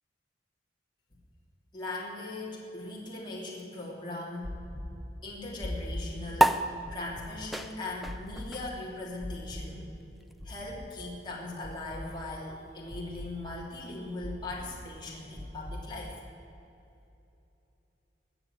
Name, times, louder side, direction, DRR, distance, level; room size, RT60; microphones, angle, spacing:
voice 1, 1.7-4.6 5.2-9.9 10.4-16.1, left 2 dB, 25° left, -4 dB, 3.0 m, -39 dB
sound 1, 4.4-4.8 5.6-6.0 6.9-7.3 8.0-8.4 9.2-9.6 10.4-10.8 11.6-12.0 12.9-13.3 14.2-14.6 15.4-15.8, left 1 dB, 15° right, 2.4 m, -39 dB
sound 2, 6.4-13.2, right 1 dB, ahead, 0.5 m, -33 dB
21.0 x 7.1 x 8.7 m, 2.8 s
head